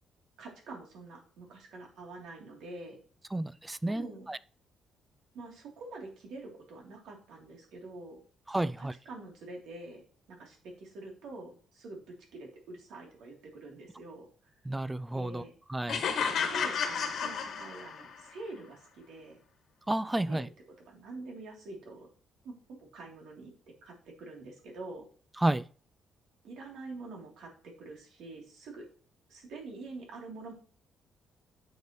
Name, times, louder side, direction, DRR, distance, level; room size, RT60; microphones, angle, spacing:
voice 1, 0.4-3.0 3.9-4.3 5.3-8.2 8.6-10.0 10.3-14.6 15.1-15.5 16.2-19.4 20.3-22.1 22.4-23.5 23.8-25.1 26.4-28.9 29.3-30.5, right 2 dB, 80° right, 3.0 m, -46 dB
voice 2, 3.3-4.4 8.5-8.9 14.7-15.4 15.7-16.1 19.9-20.5 25.4-25.6, right 1 dB, 10° right, 0.3 m, -31 dB
sound 1, 15.9-18.2, left 6 dB, 60° left, 1.5 m, -32 dB
9.3 x 6.8 x 3.1 m
cardioid pair, 145°, 0 cm